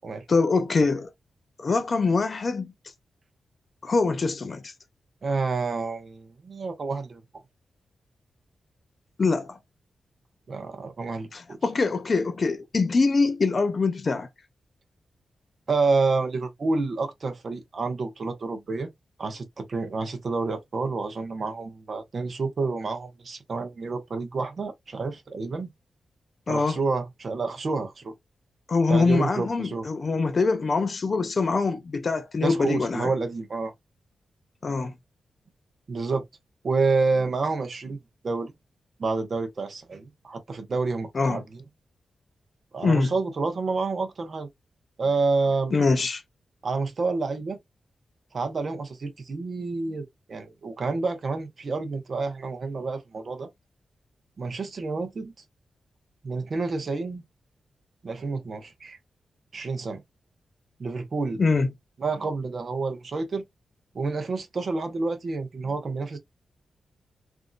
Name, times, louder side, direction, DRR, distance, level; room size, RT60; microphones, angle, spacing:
voice 1, 0.3-1.1 1.6-2.7 3.8-4.7 9.2-9.6 11.3-14.3 26.5-26.8 28.7-33.1 34.6-34.9 41.1-41.4 42.8-43.1 45.7-46.2 61.4-61.7, left 4 dB, 35° left, 0.4 m, -24 dB
voice 2, 5.2-7.2 10.5-11.6 15.7-18.9 19.2-25.7 26.5-28.1 28.9-29.9 32.4-33.7 35.9-36.2 36.6-38.5 39.0-41.6 42.7-44.5 45.0-45.7 46.6-47.6 48.3-53.5 54.4-55.3 56.2-57.2 58.0-59.0 59.5-60.0 60.8-61.4 62.0-63.4 63.9-66.2, right 3 dB, 40° right, 0.8 m, -29 dB
3.5 x 2.5 x 2.3 m
wide cardioid pair, 165°, 0 cm